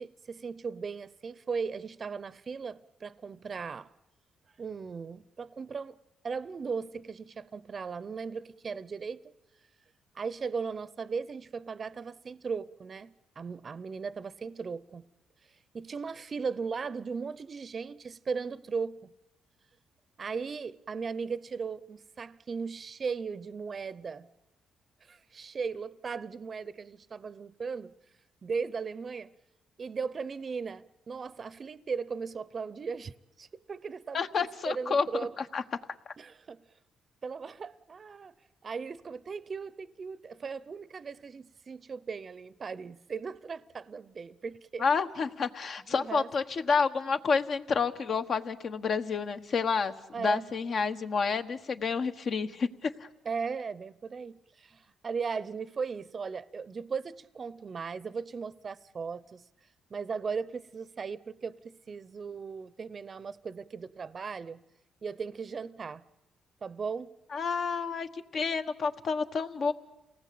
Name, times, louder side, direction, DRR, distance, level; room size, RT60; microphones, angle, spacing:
voice 1, 0.0-3.9 4.6-6.0 6.2-9.2 10.1-15.0 15.7-19.1 20.2-24.3 25.0-27.9 28.4-29.3 29.8-35.3 36.2-36.6 37.2-38.3 38.6-44.9 46.0-46.3 50.1-50.5 53.2-59.4 59.9-64.6 65.0-66.0 66.6-67.1, right 5 dB, 40° right, 0.8 m, -37 dB
voice 2, 34.1-35.1 35.5-35.6 44.8-53.1 67.3-69.7, left 5 dB, 55° left, 1.3 m, -29 dB
28.5 x 18.5 x 8.6 m
cardioid pair, 90°, 0 cm